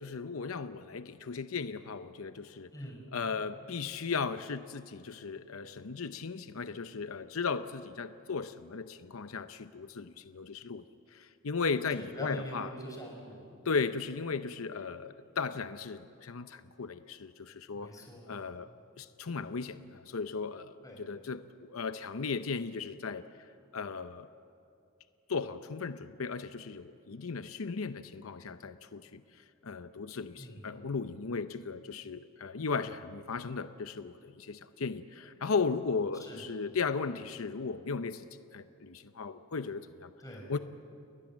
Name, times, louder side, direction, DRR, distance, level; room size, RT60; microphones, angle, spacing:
voice 1, 0.0-2.7 3.1-10.8 11.1-12.7 13.6-17.9 18.3-18.7 19.0-23.3 23.7-24.3 25.3-29.2 29.6-38.3 38.5-40.1 40.5-40.6, left 5 dB, 85° left, 11 dB, 0.7 m, -36 dB
voice 2, 2.7-3.0 12.0-13.6 17.7-18.4 20.8-21.0 30.4-30.7 36.2-36.4 40.2-40.5, equal, 15° left, 0 dB, 5.8 m, -44 dB
29.5 x 21.0 x 7.4 m, 2.8 s
head